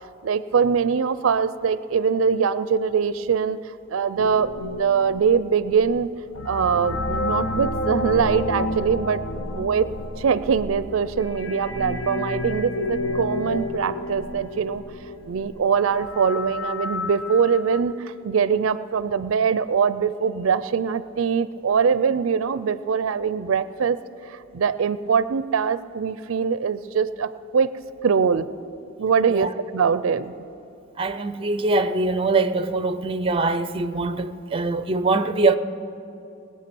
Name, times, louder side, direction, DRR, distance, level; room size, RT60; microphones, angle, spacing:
voice 1, 0.2-3.6 3.9-6.1 6.4-9.2 9.5-9.9 10.2-14.8 15.3-24.0 24.3-27.7 28.0-28.5 29.0-30.3, right 6 dB, 80° right, 0.4 m, -22 dB
sound 1, 4.2-17.8, left 2 dB, 85° left, 0.9 m, -30 dB
voice 2, 31.0-35.6, right 3 dB, 25° right, 0.5 m, -23 dB
20.5 x 8.8 x 6.1 m
head